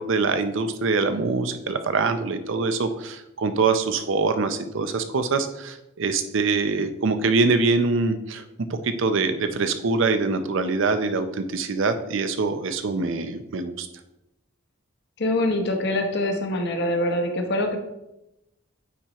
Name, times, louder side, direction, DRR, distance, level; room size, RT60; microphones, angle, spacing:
voice 1, 0.0-8.4 8.7-13.9, right 4 dB, 65° right, 9 dB, 0.6 m, -24 dB
voice 2, 15.2-17.8, left 1 dB, 55° left, 4 dB, 0.9 m, -24 dB
9.2 x 4.3 x 3.0 m, 0.91 s
head